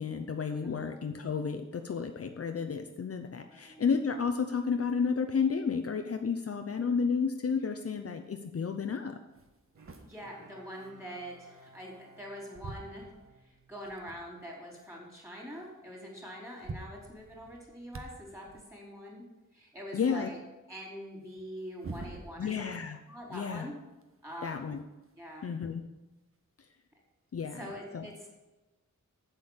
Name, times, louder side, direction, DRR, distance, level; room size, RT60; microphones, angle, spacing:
voice 1, 0.0-9.2 19.9-20.3 22.4-23.0 23.3-23.7 24.4-24.8 25.4-25.8 27.3-27.7 27.9-28.1, left 5 dB, 50° left, 6 dB, 0.7 m, -32 dB
voice 2, 3.5-3.9 10.0-13.1 13.4-19.2 19.5-20.4 20.7-22.7 23.1-23.7 24.2-24.5 25.2-25.5 27.6-28.3, equal, 10° right, -2 dB, 4.1 m, -44 dB
sound 1, 8.7-8.8 9.3-12.2 12.5-14.3 14.8-14.9 15.1-15.3 16.1-16.2 16.4-18.7 21.2-22.7 23.1-25.3 26.3-26.4 27.4-27.5, right 3 dB, 45° right, 1.2 m, -48 dB
Bowed string instrument, 9.8-14.3 14.7-14.8, right 2 dB, 80° right, 1.5 m, -58 dB
8.2 x 7.9 x 7.3 m, 1.1 s
wide cardioid pair, 120°, 31 cm